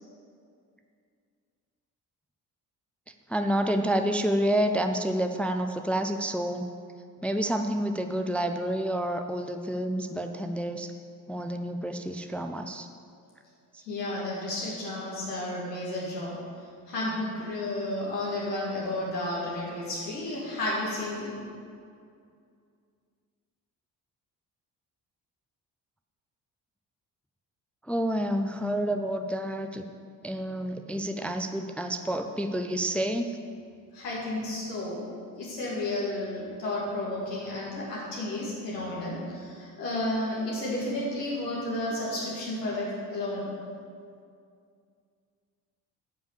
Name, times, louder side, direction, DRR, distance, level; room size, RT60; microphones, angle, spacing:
voice 1, 3.3-6.7 7.2-10.9 11.3-12.9 27.9-29.8 30.2-33.4, right 1 dB, 5° left, 6 dB, 0.4 m, -29 dB
voice 2, 13.8-16.4 16.9-21.3 33.9-35.0 35.4-43.5, left 1 dB, 80° left, -6 dB, 2.5 m, -32 dB
9.4 x 5.5 x 6.9 m, 2.3 s
figure-of-eight pair, 45°, 48 cm